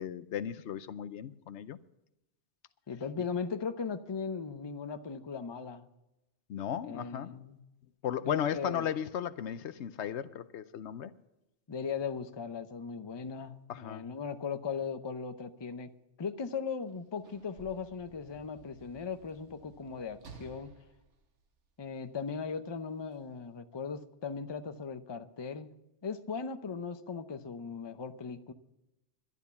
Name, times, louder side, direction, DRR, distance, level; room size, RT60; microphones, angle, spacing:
voice 1, 0.0-1.8 6.5-7.3 8.0-11.1 13.7-14.1, left 9 dB, 80° left, 0.9 m, -35 dB
voice 2, 2.9-5.9 6.9-7.6 8.2-8.9 11.7-15.9 16.2-20.7 21.8-25.7 26.0-28.5, left 5 dB, 30° left, 0.6 m, -38 dB
Sliding door / Slam, 16.8-22.2 23.1-23.2, right 4 dB, 80° right, 1.5 m, -56 dB
11.5 x 11.0 x 6.9 m
omnidirectional pair, 1.2 m